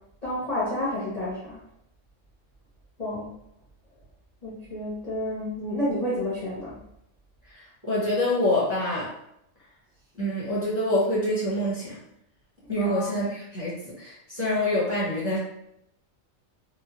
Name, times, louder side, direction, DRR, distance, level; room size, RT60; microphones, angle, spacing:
voice 1, 0.2-1.6 3.0-3.3 4.4-6.7 12.8-13.2, left 1 dB, 35° left, -9 dB, 0.7 m, -30 dB
voice 2, 7.5-9.1 10.2-12.0 12.7-15.4, left 1 dB, 10° right, -8 dB, 0.8 m, -26 dB
2.8 x 2.1 x 2.9 m, 0.77 s
omnidirectional pair, 1.4 m